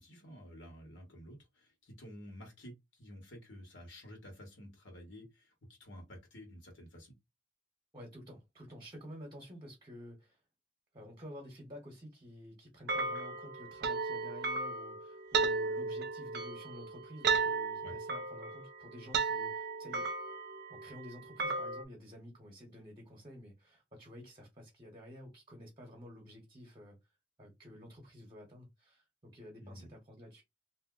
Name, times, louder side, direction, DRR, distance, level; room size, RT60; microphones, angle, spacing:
voice 1, 0.0-5.5 5.8-7.1 17.8-17.9 29.6-29.9, equal, 70° left, 1.4 m, -51 dB
voice 2, 7.9-10.4 10.9-20.1 20.7-27.0 27.4-30.4, equal, 25° right, 0.9 m, -51 dB
sound 1, 12.9-21.8, right 4 dB, 55° right, 0.5 m, -35 dB
2.6 x 2.0 x 3.7 m
head